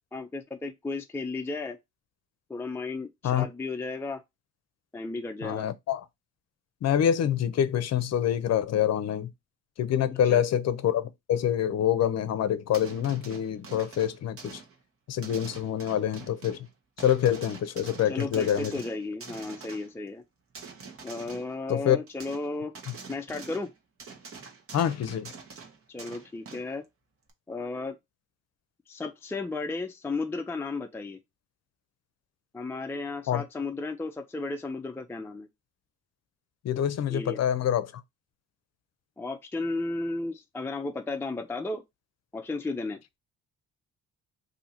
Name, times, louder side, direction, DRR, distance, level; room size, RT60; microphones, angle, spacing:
voice 1, 0.1-1.8 2.5-4.2 4.9-5.7 10.3-10.4 18.1-20.2 21.0-22.7 23.1-23.7 25.9-26.8 27.5-28.0 28.9-31.2 32.5-35.5 37.1-37.4 39.2-41.8 42.3-43.0, left 3 dB, 10° left, 0.4 m, -34 dB
voice 2, 5.4-6.0 6.8-9.3 9.8-14.6 15.1-16.7 17.0-18.7 21.7-22.0 24.7-25.3 33.3-33.4 36.6-37.9, left 10 dB, 60° left, 0.6 m, -26 dB
sound 1, 12.7-14.7 15.2-16.7 17.0-20.0 20.5-21.5 22.1-22.5 22.7-23.7 24.0-26.7 27.3-27.4, right 5 dB, 45° right, 1.1 m, -45 dB
2.8 x 2.7 x 4.2 m
cardioid pair, 90°, 30 cm